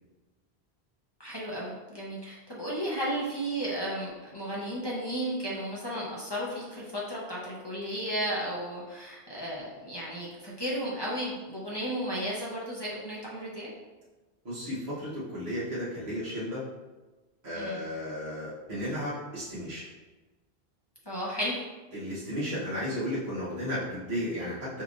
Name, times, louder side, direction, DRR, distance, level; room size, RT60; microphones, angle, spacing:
voice 1, 1.2-13.7 17.5-17.8 21.1-21.6, equal, 25° left, -6 dB, 0.7 m, -34 dB
voice 2, 14.4-16.6 17.4-19.8 21.9-24.8, equal, 45° right, -10 dB, 1.2 m, -34 dB
4.6 x 3.4 x 2.5 m, 1.2 s
omnidirectional pair, 1.1 m